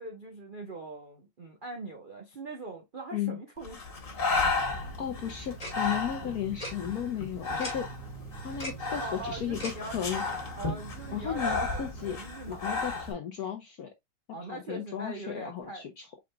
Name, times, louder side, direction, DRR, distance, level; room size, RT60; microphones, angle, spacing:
voice 1, 0.0-3.8 9.0-10.2 10.6-12.7 14.3-15.8, right 2 dB, 55° right, 0.5 m, -41 dB
Breathing, 3.6-13.1, left 3 dB, 40° left, 1.7 m, -34 dB
sound 1, 4.5-12.1, right 9 dB, 90° right, 2.9 m, -47 dB
voice 2, 4.6-7.9 8.4-10.2 11.1-12.2 12.5-13.9 14.5-16.1, left 9 dB, 65° left, 0.9 m, -35 dB
Tick-tock, 5.6-5.7 6.6-6.7 7.6-7.7 8.6-8.8 9.6-9.7, left 1 dB, 20° left, 1.8 m, -36 dB
4.9 x 4.8 x 2.2 m
omnidirectional pair, 2.4 m